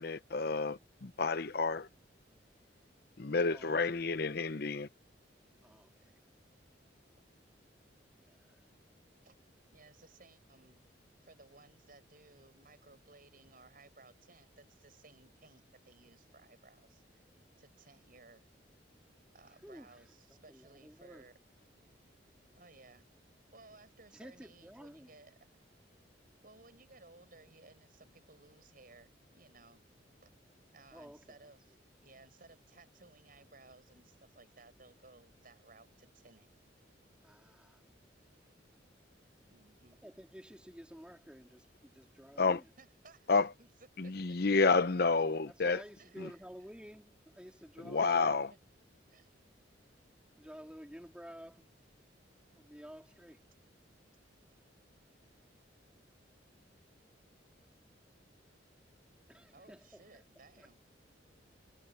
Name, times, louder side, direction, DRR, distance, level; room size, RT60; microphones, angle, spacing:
voice 1, 0.0-1.9 3.2-4.9 42.4-42.6 43.3-43.5 44.0-45.8 46.2-46.3 47.9-48.5, left 4 dB, 55° left, 0.8 m, -30 dB
voice 2, 3.4-4.0 5.6-6.2 8.2-8.6 19.5-20.1 20.5-21.3 24.1-25.1 30.9-31.5 37.2-37.8 40.0-42.7 45.5-48.5 50.4-51.7 52.5-53.4 59.3-60.2 60.6-60.7, equal, 5° right, 2.9 m, -52 dB
voice 3, 9.7-10.9 11.2-17.2 17.6-18.5 19.3-21.4 21.8-21.9 22.5-23.0 23.5-25.5 26.4-29.8 30.2-30.3 30.7-31.8 32.0-36.5 39.5-40.0 42.8-43.7 44.0-44.4 46.0-46.4 48.0-48.1 49.1-49.3 59.5-60.9, right 3 dB, 50° right, 7.9 m, -60 dB
head